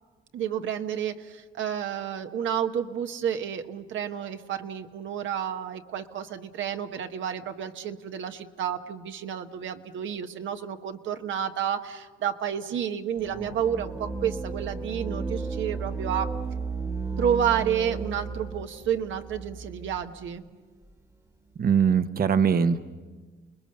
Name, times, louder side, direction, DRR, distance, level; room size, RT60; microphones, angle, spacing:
voice 1, 0.3-16.3 17.2-20.4, right 8 dB, 75° right, 6 dB, 1.2 m, -30 dB
sound 1, 13.2-20.3, right 4 dB, 15° right, 1.4 m, -34 dB
voice 2, 21.6-22.8, right 7 dB, 50° right, 10 dB, 1.0 m, -21 dB
29.5 x 20.0 x 6.7 m, 1.4 s
cardioid pair, 90°, 20 cm